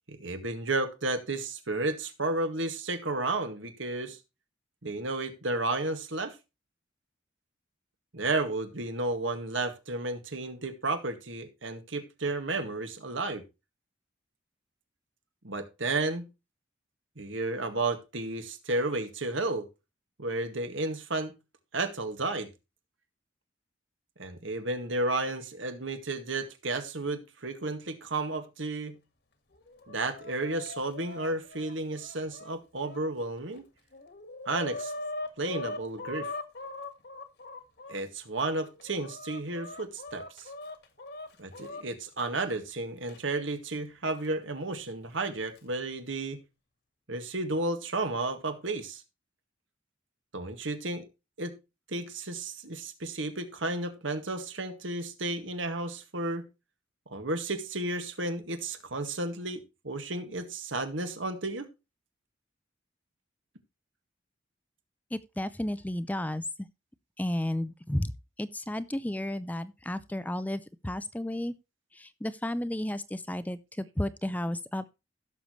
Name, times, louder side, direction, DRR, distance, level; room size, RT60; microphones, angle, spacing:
voice 1, 0.1-4.2 4.8-6.4 8.1-13.4 15.4-16.3 17.2-19.7 20.2-21.3 21.7-22.5 24.2-29.0 29.9-33.6 34.5-34.9 35.4-36.3 37.9-40.5 41.4-46.4 47.1-49.0 50.3-51.1 51.4-51.5 51.9-56.5 57.1-61.7, right 2 dB, 80° right, 1.9 m, -32 dB
Chicken rooster, 29.5-33.0 33.6-33.7 33.9-38.0 38.6-41.8 43.1-43.2 44.2-44.3 45.3-45.6, left 2 dB, 55° left, 1.7 m, -41 dB
voice 2, 65.1-66.4 67.2-68.1 68.4-71.5 71.9-74.9, left 1 dB, 10° left, 0.5 m, -33 dB
16.5 x 6.8 x 3.1 m
head